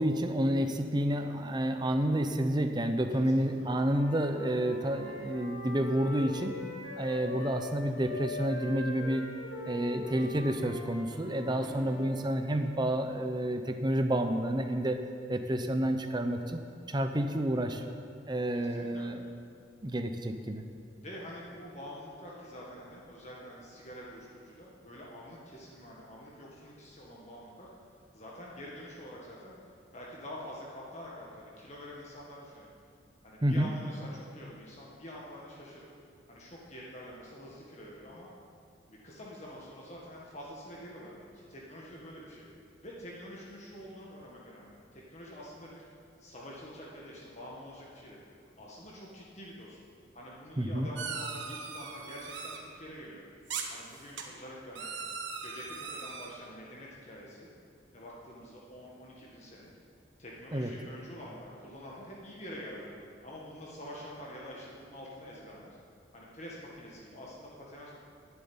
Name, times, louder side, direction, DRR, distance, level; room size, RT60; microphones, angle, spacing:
voice 1, 0.0-6.6 7.0-9.3 9.7-16.6 16.9-17.8 18.3-19.2 19.8-20.6 33.4-33.7 50.6-50.9 60.5-60.7, right 1 dB, 25° right, 6 dB, 0.7 m, -30 dB
Wind instrument woodwind instrument, 3.7-7.7 7.9-12.2, left 2 dB, 70° left, 3.9 m, -42 dB
voice 2, 11.5-12.0 18.5-19.1 21.0-27.7 28.1-29.5 29.9-32.7 33.2-35.9 36.3-38.3 38.9-42.5 42.8-45.8 46.2-48.2 48.6-49.8 50.1-53.2 53.7-54.9 55.4-57.5 57.9-59.7 60.2-62.9 63.2-65.7 66.1-67.9, equal, 35° left, -4 dB, 1.7 m, -46 dB
sound 1, 51.0-52.6 53.5-54.2 54.7-56.3, right 5 dB, 70° right, 1.4 m, -39 dB
10.5 x 8.0 x 9.5 m, 2.4 s
head